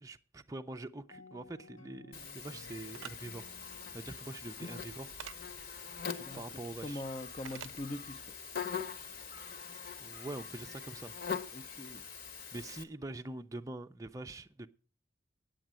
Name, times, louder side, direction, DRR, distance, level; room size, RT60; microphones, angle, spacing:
voice 1, 0.0-5.1 6.3-7.0 10.0-11.1 12.5-14.7, right 2 dB, 15° right, 0.5 m, -44 dB
sound 1, 1.1-5.7, left 3 dB, 75° left, 0.9 m, -58 dB
Buzz, 2.1-12.8, left 6 dB, 45° left, 1.1 m, -43 dB
sound 2, 2.9-3.1 5.2-5.4 7.5-7.8, right 9 dB, 85° right, 0.5 m, -45 dB
voice 2, 6.2-8.2 11.5-12.0, left 1 dB, 30° left, 0.6 m, -42 dB
9.1 x 8.9 x 7.4 m
head